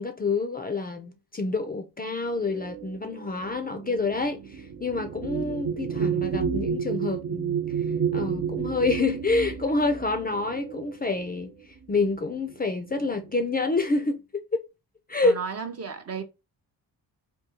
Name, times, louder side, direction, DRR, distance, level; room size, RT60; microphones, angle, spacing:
voice 1, 0.0-7.6 8.1-11.5 11.9-14.6 15.1-15.4, left 3 dB, 25° left, 0.4 m, -27 dB
sound 1, 2.5-11.4 12.4-12.5 12.9-13.4, right 7 dB, 70° right, 0.8 m, -31 dB
voice 2, 15.2-16.2, right 6 dB, 40° right, 0.6 m, -33 dB
3.7 x 2.3 x 2.8 m
cardioid pair, 75°, 41 cm